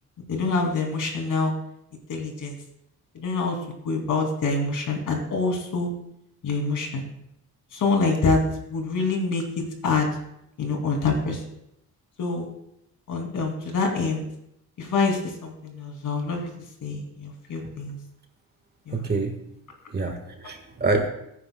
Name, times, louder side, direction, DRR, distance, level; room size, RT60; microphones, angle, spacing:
voice 1, 0.3-1.5 2.1-2.5 3.1-3.6 3.8-5.9 6.4-7.0 7.7-8.4 8.7-10.1 10.6-11.4 12.2-12.5 13.1-14.2 14.8-16.5 16.8-18.0 18.9-19.0, left 3 dB, 60° left, 2 dB, 2.7 m, -26 dB
voice 2, 18.9-19.3 19.9-21.1, right 3 dB, 30° right, 4 dB, 1.5 m, -26 dB
22.0 x 9.8 x 2.3 m, 0.78 s
cardioid pair, 150°, 35 cm